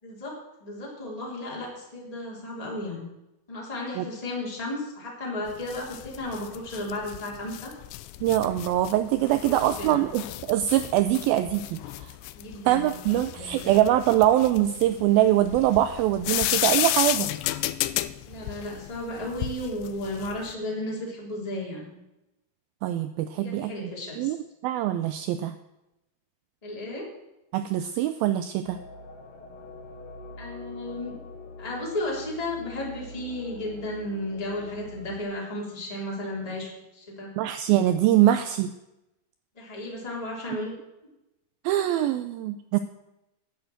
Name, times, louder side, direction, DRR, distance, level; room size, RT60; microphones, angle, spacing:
voice 1, 0.0-3.0 3.5-7.7 9.4-10.0 12.3-12.9 13.3-13.7 18.3-22.0 23.3-24.3 26.6-27.1 30.4-31.2 31.6-37.3 39.5-40.7, left 1 dB, 10° left, -3 dB, 3.0 m, -34 dB
sound 1, 5.5-20.5, left 16 dB, 85° left, 2.8 m, -32 dB
voice 2, 8.2-12.2 12.7-17.3 22.8-23.9 24.2-24.4 24.6-25.6 27.5-28.8 37.4-38.7 41.6-42.8, right 13 dB, 85° right, 11 dB, 2.1 m, -23 dB
sound 2, 28.6-35.2, left 2 dB, 60° left, 3.5 m, -44 dB
10.5 x 9.9 x 7.9 m, 0.91 s
omnidirectional pair, 4.8 m